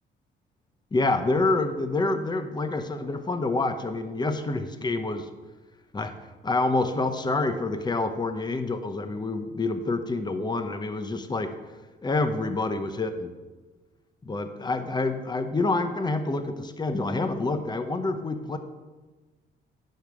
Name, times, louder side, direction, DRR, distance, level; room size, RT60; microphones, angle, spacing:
voice 1, 0.9-5.3 5.9-6.2 6.4-11.5 12.0-13.3 14.2-18.6, left 2 dB, 20° left, 8 dB, 0.9 m, -27 dB
10.5 x 5.0 x 6.3 m, 1.2 s
cardioid pair, 90°, 20 cm